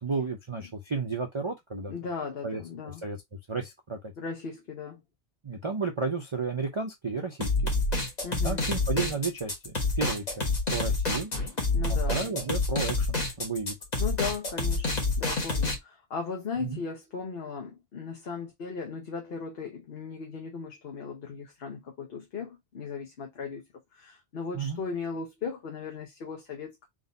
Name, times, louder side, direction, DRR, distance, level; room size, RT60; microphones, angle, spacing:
voice 1, 0.0-1.9 2.4-3.2 3.5-4.0 5.4-7.7 8.4-11.3 12.1-13.7 16.6-16.8 24.5-24.8, right 4 dB, 30° right, 0.6 m, -33 dB
voice 2, 1.9-3.0 4.2-5.0 8.2-8.7 11.7-12.2 14.0-23.6 23.9-26.9, left 5 dB, 60° left, 1.1 m, -37 dB
sound 1, 7.4-15.8, left 3 dB, 35° left, 1.3 m, -28 dB
3.9 x 2.6 x 3.9 m
omnidirectional pair, 1.2 m